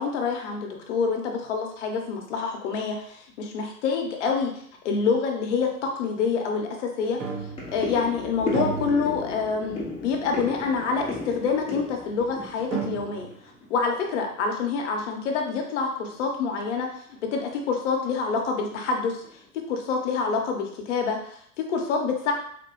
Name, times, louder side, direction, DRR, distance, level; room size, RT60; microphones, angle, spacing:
voice 1, 0.0-4.5 4.8-7.2 7.7-13.3 13.7-16.9 17.3-19.2 19.5-22.3, left 5 dB, 50° left, 2 dB, 0.9 m, -27 dB
sound 1, 6.1-6.2 6.5-6.7 7.1-13.6 13.9-14.5 14.9-15.1 15.4-15.5 16.0-16.2 16.5-16.7 17.2-17.6 18.2-18.4 18.7-19.4 19.7-19.8, left 2 dB, 10° left, 0.8 m, -35 dB
sound 2, 7.2-8.1 8.5-9.7 10.1-10.2 11.1-11.2 12.3-12.4 12.7-13.5, right 6 dB, 25° right, 0.8 m, -33 dB
4.1 x 2.2 x 3.0 m, 0.62 s
figure-of-eight pair, 105°, 45 cm